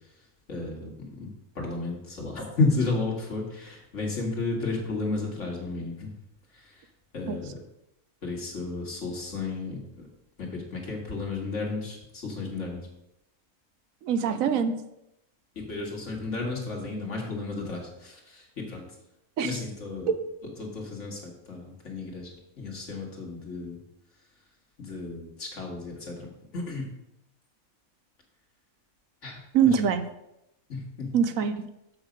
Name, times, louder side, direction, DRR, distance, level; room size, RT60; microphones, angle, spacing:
voice 1, 0.5-1.3 1.6-6.1 6.5-6.7 7.1-7.5 8.2-10.1 10.4-12.8 15.6-18.9 19.4-20.1 20.6-21.2 21.5-23.8 24.8-26.3 26.5-26.9 29.2-29.8 30.7-31.1, left 3 dB, 55° left, 0 dB, 2.1 m, -32 dB
voice 2, 14.0-14.8 19.4-19.6 20.1-20.2 29.5-30.0 31.1-31.7, right 7 dB, 75° right, 10 dB, 1.0 m, -24 dB
7.3 x 6.4 x 5.1 m, 0.85 s
omnidirectional pair, 1.5 m